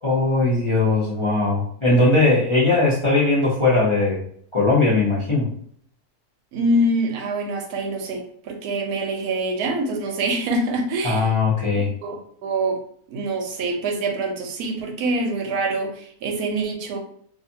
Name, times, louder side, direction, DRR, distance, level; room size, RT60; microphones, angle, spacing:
voice 1, 0.0-4.2 4.5-5.5 11.0-11.9, left 3 dB, 30° left, -8 dB, 0.6 m, -19 dB
voice 2, 6.5-11.3 11.7-12.2 12.4-12.8 13.1-17.0, right 2 dB, 80° right, 3 dB, 1.1 m, -25 dB
2.5 x 2.5 x 2.7 m, 0.65 s
omnidirectional pair, 1.6 m